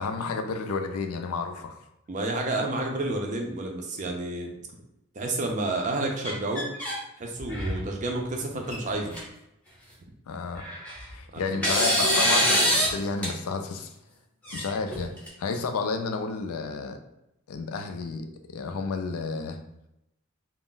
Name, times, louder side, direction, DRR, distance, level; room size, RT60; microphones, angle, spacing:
voice 1, 0.0-1.8 10.3-10.7 11.1-13.9 14.5-15.1 15.4-17.0 17.5-19.6, left 4 dB, 85° left, 6 dB, 0.4 m, -31 dB
voice 2, 2.1-4.5 5.1-6.7 7.2-9.2 11.3-11.7, right 2 dB, 35° right, 2 dB, 0.4 m, -30 dB
sound 1, 6.2-7.0 7.4-7.9 8.7-8.8 9.1-9.2 10.5-11.1 11.6-12.9 13.2-13.3 14.4-15.3, equal, 5° left, 0.6 m, -24 dB
2.4 x 2.0 x 3.7 m, 0.85 s
head